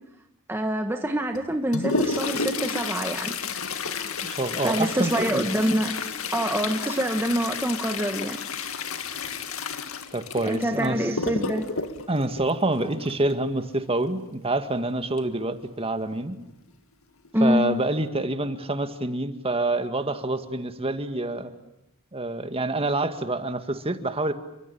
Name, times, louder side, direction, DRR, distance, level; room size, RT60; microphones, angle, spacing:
voice 1, 0.5-3.3 4.6-6.0 6.3-8.4 10.4-11.7 17.3-17.6, equal, 10° right, 5 dB, 1.5 m, -25 dB
Toilet flush, 1.3-13.3 15.2-15.3 15.6-15.7 16.5-16.6 17.2-17.5 17.9-18.1, left 4 dB, 70° left, 2.3 m, -31 dB
voice 2, 4.2-5.5 10.1-11.1 12.1-16.4 17.4-21.5 22.1-24.3, right 2 dB, 25° right, 9 dB, 2.0 m, -27 dB
30.0 x 24.5 x 7.0 m, 0.89 s
head